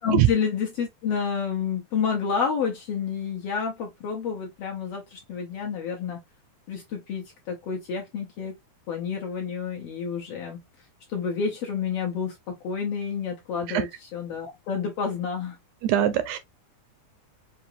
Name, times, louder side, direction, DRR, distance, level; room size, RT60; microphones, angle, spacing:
voice 1, 0.0-6.2 6.7-8.6 8.9-10.6 11.1-15.6, left 6 dB, 70° left, 1.5 m, -29 dB
voice 2, 15.8-16.4, right 12 dB, 80° right, 1.8 m, -21 dB
5.7 x 2.6 x 2.6 m
omnidirectional pair, 3.5 m